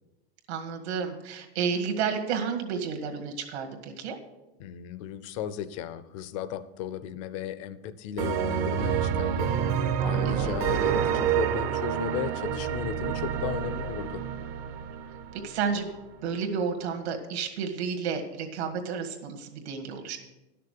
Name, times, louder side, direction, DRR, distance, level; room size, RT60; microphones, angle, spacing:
voice 1, 0.5-4.2 10.3-10.6 15.3-15.9 16.2-20.2, right 6 dB, 75° right, 4 dB, 2.0 m, -31 dB
voice 2, 4.6-9.5 10.0-14.2, left 9 dB, 30° left, 13 dB, 0.4 m, -35 dB
sound 1, 8.2-15.8, right 8 dB, 35° right, 0.5 m, -28 dB
11.5 x 6.8 x 6.6 m, 1.0 s
supercardioid pair, 180°, 33 cm